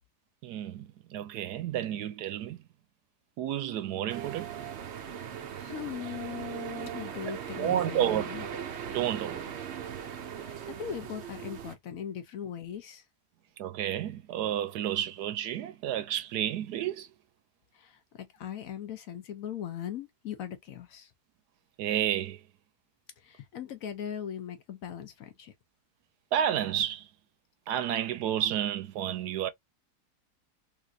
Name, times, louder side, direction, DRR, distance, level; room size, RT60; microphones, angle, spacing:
voice 1, 0.4-2.6 3.4-4.6 7.3-8.3 8.9-9.5 13.6-17.1 21.8-22.4 26.3-27.1 27.7-29.5, right 10 dB, 75° right, 1.2 m, -31 dB
sound 1, 4.1-11.7, right 8 dB, 60° right, 0.7 m, -39 dB
voice 2, 5.5-8.5 10.3-13.0 17.7-21.1 23.2-25.5, left 9 dB, 65° left, 0.9 m, -40 dB
3.4 x 2.9 x 2.4 m
omnidirectional pair, 1.8 m